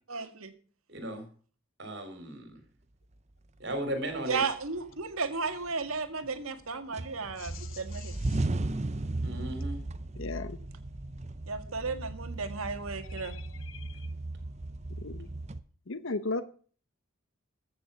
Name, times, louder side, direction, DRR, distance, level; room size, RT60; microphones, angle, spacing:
voice 1, 0.1-0.5 4.3-8.1 11.5-13.3, right 4 dB, 85° right, 8 dB, 1.7 m, -34 dB
voice 2, 0.9-1.3 1.8-2.6 3.6-4.4 9.2-9.8, right 1 dB, 55° right, 7 dB, 3.6 m, -36 dB
sound 1, 4.4-5.1 5.5-6.6 6.9-15.6, right 2 dB, 30° right, 0.6 m, -36 dB
voice 3, 10.2-10.6 15.0-15.3 15.9-16.4, left 3 dB, 70° left, 13 dB, 0.9 m, -34 dB
14.5 x 6.8 x 6.9 m, 0.42 s
head